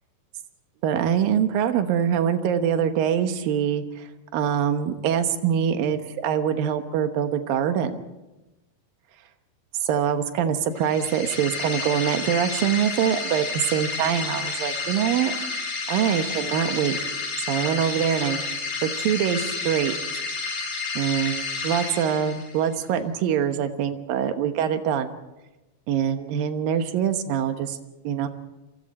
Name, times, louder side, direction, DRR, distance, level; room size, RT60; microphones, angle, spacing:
voice 1, 0.8-4.1 4.3-8.0 9.8-13.5 13.7-15.3 15.9-17.0 17.5-18.4 18.8-19.9 21.0-25.1 25.9-27.8 28.0-28.3, right 8 dB, 70° right, 8 dB, 2.8 m, -24 dB
sound 1, 10.8-22.7, left 4 dB, 50° left, 5.3 m, -30 dB
27.5 x 24.0 x 4.3 m, 1.0 s
omnidirectional pair, 4.6 m